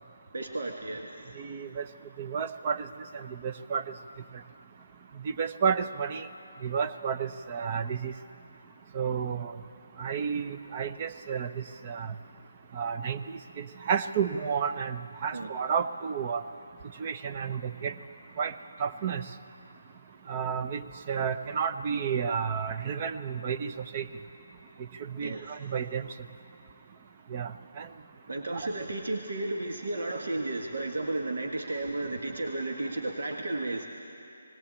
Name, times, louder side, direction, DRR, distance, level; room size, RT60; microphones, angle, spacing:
voice 1, 0.3-1.3 15.3-15.5 25.2-25.5 28.3-33.9, right 2 dB, 70° right, 1 dB, 1.7 m, -33 dB
voice 2, 1.4-1.9 2.2-2.9 3.1-3.9 5.2-6.3 6.6-8.1 8.9-9.5 10.0-12.1 12.7-16.4 17.0-17.9 18.4-18.5 18.8-19.2 20.3-24.1 25.0-26.1 27.3-27.9 28.5-28.7, right 6 dB, 35° right, 8 dB, 0.8 m, -31 dB
19.5 x 18.0 x 8.6 m, 2.8 s
figure-of-eight pair, 150°, 0 cm